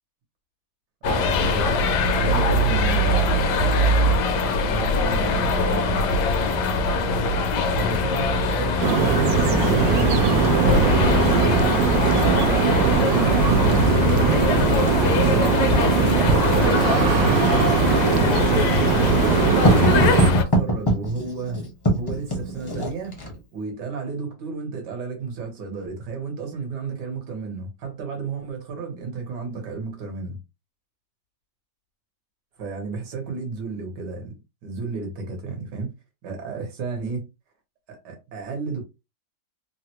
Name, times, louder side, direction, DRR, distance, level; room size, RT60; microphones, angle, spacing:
sound 1, 1.0-20.4, left 2 dB, 75° left, 1.1 m, -22 dB
voice 1, 1.0-3.2 4.7-6.0 7.5-23.2 23.5-30.4 32.6-34.3 34.6-35.9 36.2-37.3 37.9-38.8, right 4 dB, 70° right, 1.7 m, -32 dB
sound 2, 8.8-20.3, right 5 dB, 90° right, 1.3 m, -20 dB
Writing, 17.4-23.4, right 1 dB, 25° left, 0.5 m, -24 dB
3.7 x 2.1 x 2.9 m
omnidirectional pair, 1.9 m